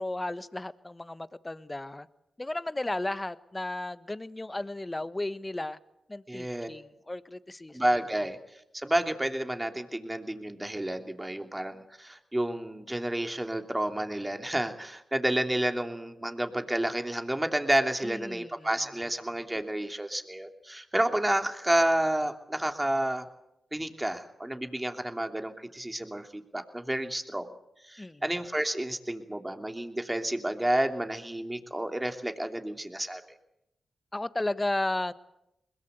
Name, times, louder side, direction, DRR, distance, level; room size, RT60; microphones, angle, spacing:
voice 1, 0.0-2.1 2.4-5.8 6.1-7.8 18.0-18.7 28.0-28.2 34.1-35.1, left 2 dB, 25° left, 14 dB, 1.3 m, -34 dB
voice 2, 6.3-6.7 7.7-8.4 8.7-23.3 23.7-27.5 27.8-33.2, right 1 dB, 15° right, 6 dB, 3.0 m, -30 dB
21.5 x 21.0 x 8.1 m, 0.85 s
supercardioid pair, 45°, 0 cm